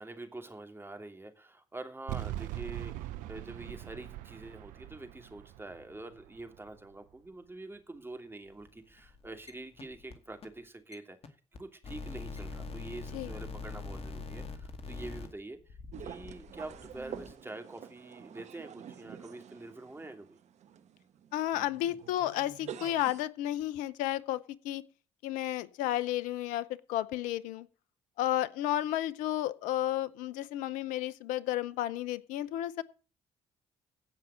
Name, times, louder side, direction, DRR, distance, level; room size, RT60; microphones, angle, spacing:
voice 1, 0.0-20.4, right 2 dB, 15° right, 5 dB, 2.8 m, -46 dB
sound 1, 2.1-7.3, right 13 dB, 75° right, 0.6 m, -42 dB
sound 2, 8.5-8.7 9.0-9.5 9.8-10.1 10.4-10.5 10.9-11.0 11.2-11.3 11.5-11.6 11.8-17.3, left 3 dB, 45° left, 2.2 m, -43 dB
sound 3, 15.9-23.2, right 9 dB, 60° right, 1.1 m, -48 dB
voice 2, 21.3-24.8 25.2-27.7 28.2-32.8, left 13 dB, 75° left, 18 dB, 0.7 m, -32 dB
16.5 x 5.6 x 7.4 m, 0.38 s
hypercardioid pair, 50°, 13 cm